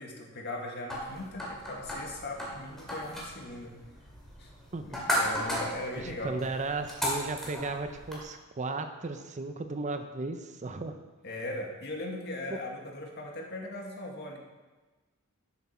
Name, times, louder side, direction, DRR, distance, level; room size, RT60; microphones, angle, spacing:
voice 1, 0.0-3.8 4.4-4.5 4.8-6.4 11.2-14.4, left 1 dB, 50° left, 0 dB, 1.7 m, -39 dB
sound 1, 0.9-8.2, equal, ahead, 2.5 m, -35 dB
voice 2, 6.0-11.0 12.5-12.6, right 3 dB, 35° right, 8 dB, 0.6 m, -35 dB
12.0 x 7.4 x 4.3 m, 1.2 s
head